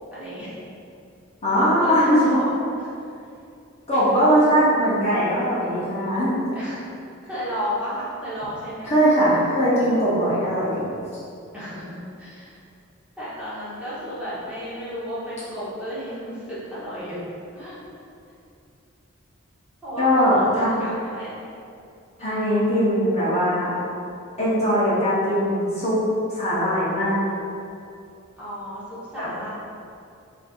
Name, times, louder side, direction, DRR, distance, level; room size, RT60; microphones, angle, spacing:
voice 1, 0.1-0.5 1.5-2.4 2.8-3.2 6.5-6.9 7.2-8.9 11.5-12.6 13.2-17.2 17.5-17.8 19.8-21.3 22.2-22.5 28.4-29.5, equal, 5° right, -12 dB, 1.1 m, -33 dB
voice 2, 1.4-2.3 3.9-6.5 8.8-10.9 20.0-20.7 22.2-23.7 24.4-26.0 26.3-27.2 29.2-29.3, equal, 30° left, -10 dB, 0.7 m, -20 dB
5.1 x 2.6 x 2.4 m, 2.6 s
head